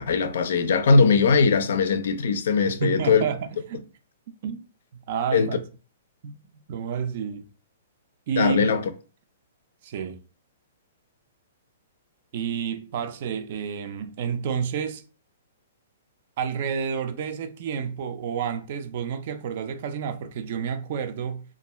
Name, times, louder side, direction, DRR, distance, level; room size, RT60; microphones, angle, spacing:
voice 1, 0.0-3.2 5.3-5.5 8.3-8.8, left 5 dB, 70° left, 0.4 m, -20 dB
voice 2, 2.7-3.9 4.4-4.7 4.9-5.6 6.2-6.4 6.7-7.4 8.3-8.7 9.8-10.2 12.3-15.0 16.4-21.4, right 7 dB, 50° right, 0.4 m, -30 dB
2.4 x 2.1 x 3.0 m
hypercardioid pair, 145°, 0 cm